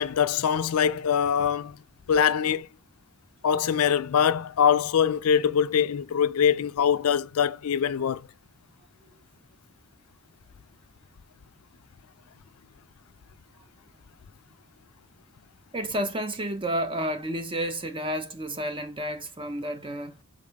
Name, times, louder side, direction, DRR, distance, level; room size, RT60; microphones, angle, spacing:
voice 1, 0.0-1.8 2.1-2.7 3.4-8.2, left 8 dB, 75° left, 0.4 m, -23 dB
voice 2, 15.7-20.2, right 1 dB, 25° right, 0.9 m, -31 dB
5.2 x 4.2 x 4.8 m
head